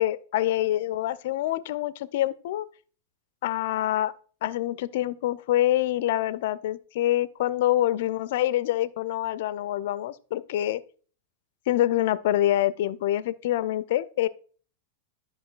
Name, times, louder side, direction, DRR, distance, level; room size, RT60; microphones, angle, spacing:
voice 1, 0.0-2.7 3.4-4.1 4.4-10.8 11.7-14.3, left 13 dB, 55° left, 0.4 m, -26 dB
12.0 x 5.6 x 2.4 m
figure-of-eight pair, 90°, 0 cm